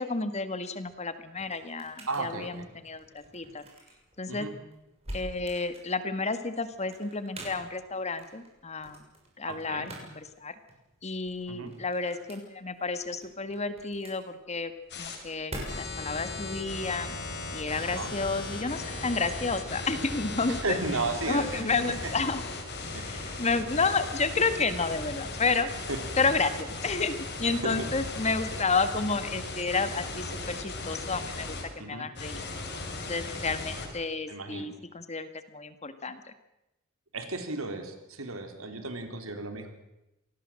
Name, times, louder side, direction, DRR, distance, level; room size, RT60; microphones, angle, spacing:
voice 1, 0.0-3.6 4.2-4.5 5.1-9.0 9.4-10.5 11.0-14.7 15.0-17.2 17.5-20.8 21.3-22.4 23.1-25.7 26.2-32.4 32.9-36.2, left 4 dB, 30° left, 11 dB, 1.7 m, -31 dB
sound 1, 0.7-16.2, right 1 dB, 30° right, 6.8 m, -47 dB
voice 2, 2.1-2.7 4.3-4.5 9.5-9.9 11.5-11.7 17.9-18.2 20.5-21.7 22.0-22.1 22.9-23.1 25.9-26.0 27.5-27.9 31.8-32.1 34.3-34.7 37.1-39.7, right 3 dB, 90° right, 6 dB, 3.9 m, -34 dB
sound 2, 14.9-15.2 15.7-31.6 32.2-33.9, left 3 dB, 55° left, 5.4 m, -37 dB
26.5 x 19.0 x 7.7 m, 0.93 s
head